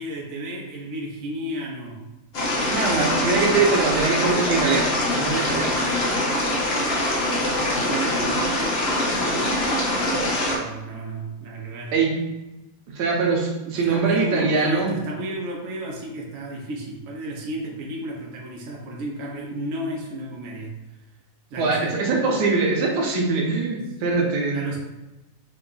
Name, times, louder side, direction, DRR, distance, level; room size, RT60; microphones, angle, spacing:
voice 1, 0.0-2.0 2.8-3.0 7.2-8.8 9.2-9.7 10.5-11.9 13.6-20.7 21.5-22.0 24.5-24.8, right 1 dB, 60° right, -2 dB, 1.1 m, -33 dB
sound 1, 2.3-10.6, left 1 dB, 50° left, 0.9 m, -23 dB
voice 2, 2.7-5.8 11.9-12.2 12.9-14.9 21.6-24.8, right 4 dB, 85° right, -1 dB, 1.4 m, -22 dB
4.5 x 2.3 x 3.8 m, 1.0 s
omnidirectional pair, 1.7 m